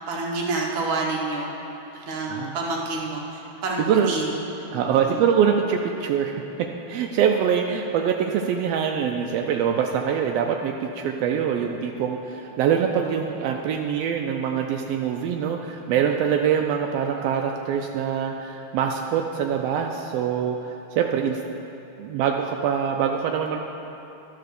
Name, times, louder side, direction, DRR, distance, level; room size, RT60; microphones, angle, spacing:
voice 1, 0.1-1.5 2.1-4.3 5.1-5.2, right 3 dB, 55° right, -2 dB, 1.7 m, -28 dB
voice 2, 3.8-4.1 4.7-21.4 22.0-23.6, right 8 dB, 85° right, 3 dB, 1.4 m, -24 dB
12.0 x 4.7 x 6.5 m, 3.0 s
omnidirectional pair, 3.3 m